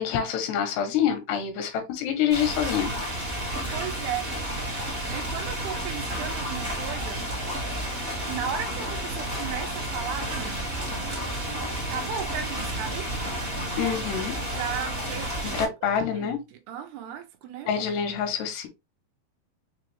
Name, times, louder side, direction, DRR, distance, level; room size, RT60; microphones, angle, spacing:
voice 1, 0.0-2.9 13.8-14.4 15.5-16.4 17.7-18.7, left 8 dB, 80° left, 3.2 m, -26 dB
sound 1, 2.3-15.6, right 1 dB, 50° right, 0.6 m, -31 dB
voice 2, 3.7-4.5 5.1-7.2 8.3-10.7 11.9-13.1 13.8-14.0 14.4-17.8, right 8 dB, 80° right, 2.6 m, -36 dB
6.8 x 2.4 x 3.2 m
omnidirectional pair, 4.7 m